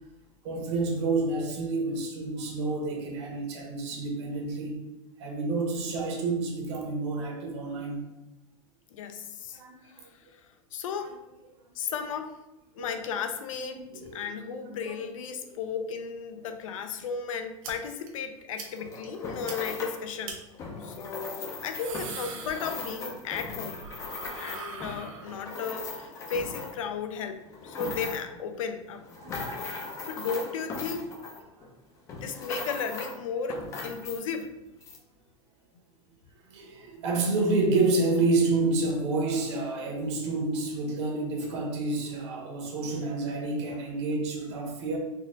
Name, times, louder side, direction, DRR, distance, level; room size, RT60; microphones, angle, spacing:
voice 1, 0.4-4.8 5.2-8.0 9.5-9.7 10.9-11.1 12.8-12.9 13.7-14.2 14.9-15.0 15.5-15.6 29.2-29.8 31.6-31.7 36.5-45.0, right 3 dB, 60° right, 0 dB, 1.3 m, -29 dB
voice 2, 8.9-9.6 10.0-10.1 10.7-11.2 11.8-12.4 12.8-13.8 14.1-20.4 20.8-23.8 24.4-29.0 30.1-31.1 32.1-34.5, left 6 dB, 85° left, 8 dB, 0.5 m, -34 dB
sound 1, 17.6-17.7 18.1-18.2 18.6-18.7 19.0-19.1 19.5-19.6 20.2-20.4 21.5-23.2 23.5-25.6, right 5 dB, 85° right, 1.0 m, -41 dB
sound 2, 18.6-20.1 20.5-27.0 27.4-28.4 28.9-31.7 32.1-33.2 33.5-34.5 34.8-35.0, left 3 dB, 20° left, 0.4 m, -39 dB
4.1 x 2.4 x 3.8 m, 0.95 s
supercardioid pair, 165°, 17 cm